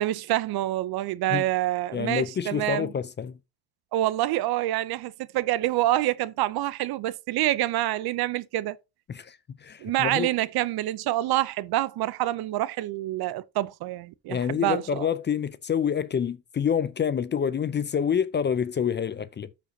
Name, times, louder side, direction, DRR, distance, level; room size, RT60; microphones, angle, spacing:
voice 1, 0.0-2.9 3.9-8.8 9.8-15.1, right 15 dB, 60° right, 0.6 m, -27 dB
voice 2, 1.9-3.4 9.1-10.3 14.3-19.5, left 7 dB, 25° left, 0.5 m, -27 dB
13.0 x 5.2 x 2.7 m
cardioid pair, 105°, 44 cm